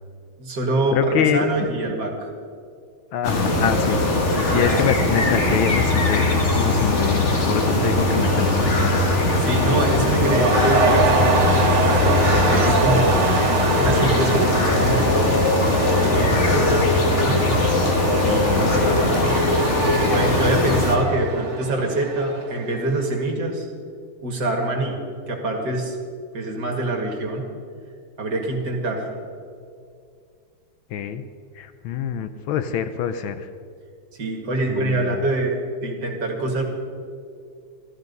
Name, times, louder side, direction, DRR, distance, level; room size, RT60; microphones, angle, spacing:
voice 1, 0.4-2.3 4.4-5.1 9.4-13.3 13.8-15.3 15.8-17.6 18.2-19.2 20.1-23.7 24.2-25.0 25.3-26.0 26.3-27.5 28.2-29.1 34.2-35.6 35.8-36.6, right 2 dB, 50° right, 1 dB, 2.4 m, -25 dB
voice 2, 0.9-1.7 3.1-6.3 6.5-9.2 30.9-31.3 31.6-33.5 34.7-35.2, left 8 dB, 75° left, 10 dB, 1.4 m, -25 dB
sound 1, 3.2-21.0, left 2 dB, 35° left, 1.6 m, -20 dB
Cheering / Crowd, 6.0-22.9, right 3 dB, 85° right, 2.5 m, -26 dB
14.5 x 13.5 x 5.4 m, 2.4 s
omnidirectional pair, 2.4 m